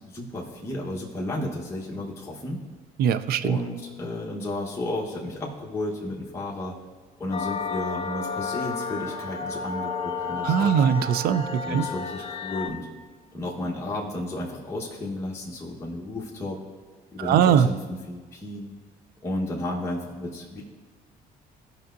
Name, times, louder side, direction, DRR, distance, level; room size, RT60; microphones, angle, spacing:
voice 1, 0.0-2.6 3.4-6.8 7.2-10.8 11.6-12.9 13.3-16.6 17.1-18.7 19.2-20.6, left 1 dB, 15° left, -5 dB, 1.1 m, -33 dB
voice 2, 3.0-3.6 10.4-11.9 17.2-17.7, right 8 dB, 65° right, 13 dB, 0.4 m, -21 dB
sound 1, 7.3-12.7, left 5 dB, 35° left, 0.6 m, -32 dB
15.0 x 5.6 x 2.6 m, 1.4 s
cardioid pair, 110°, 17 cm